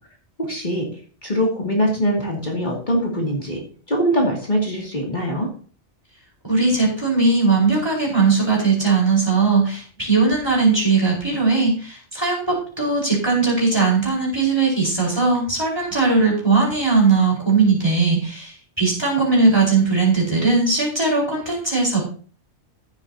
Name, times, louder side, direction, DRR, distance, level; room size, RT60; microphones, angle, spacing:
voice 1, 0.4-0.9 1.2-3.6 3.9-5.5, equal, 40° left, -2 dB, 2.7 m, -22 dB
voice 2, 6.4-22.0, right 4 dB, 20° right, -3 dB, 4.7 m, -19 dB
15.0 x 8.0 x 2.8 m, 0.41 s
omnidirectional pair, 1.2 m